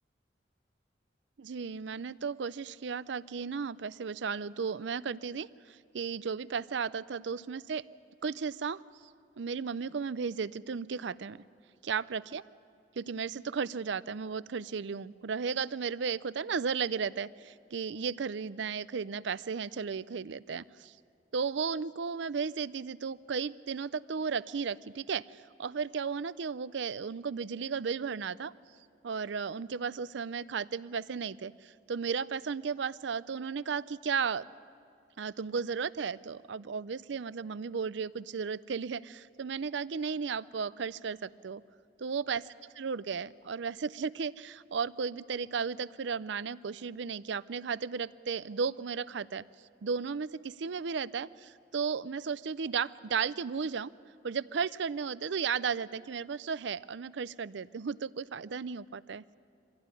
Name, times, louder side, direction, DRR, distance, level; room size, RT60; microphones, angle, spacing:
voice 1, 1.4-7.8 8.2-8.8 9.4-11.4 11.8-12.4 13.0-20.9 21.3-28.5 29.0-34.5 35.2-41.6 42.0-42.4 42.8-49.4 49.8-53.9 54.2-59.2, right 6 dB, 70° right, 18 dB, 0.5 m, -34 dB
24.0 x 15.5 x 9.7 m, 2.4 s
head